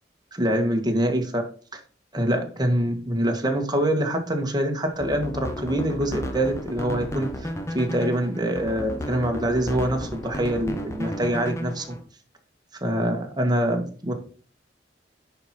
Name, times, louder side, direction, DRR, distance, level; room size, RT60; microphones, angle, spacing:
voice 1, 0.3-1.4 1.7-1.8 2.1-7.3 7.7-11.9 12.8-14.2, right 1 dB, 25° right, 4 dB, 1.6 m, -25 dB
sound 1, 4.9-12.0, equal, 15° left, 1.1 m, -33 dB
10.5 x 4.7 x 4.3 m, 0.42 s
head